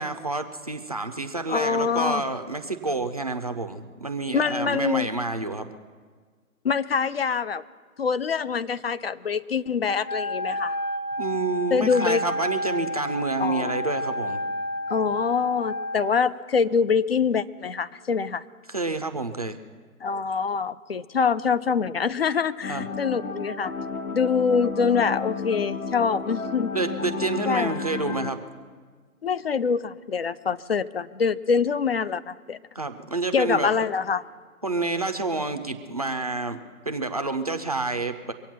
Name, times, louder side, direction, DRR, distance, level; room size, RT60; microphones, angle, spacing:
voice 1, 0.0-5.7 11.2-14.4 18.7-19.6 22.7-22.9 26.7-28.4 32.7-33.8 34.6-38.3, right 3 dB, 25° right, 7 dB, 0.5 m, -29 dB
voice 2, 1.5-2.2 4.3-5.1 6.6-7.6 8.0-10.8 11.7-12.2 13.4-13.8 14.9-18.4 20.0-23.7 24.1-26.7 27.5-27.7 29.2-32.6 33.3-34.2, left 6 dB, 45° left, 15 dB, 0.4 m, -25 dB
Wind instrument woodwind instrument, 10.0-16.2, equal, 85° left, 1.1 m, -30 dB
sound 1, 22.6-28.3, left 5 dB, 65° left, 1.7 m, -32 dB
23.5 x 8.4 x 5.9 m, 1.5 s
figure-of-eight pair, 145°, 44 cm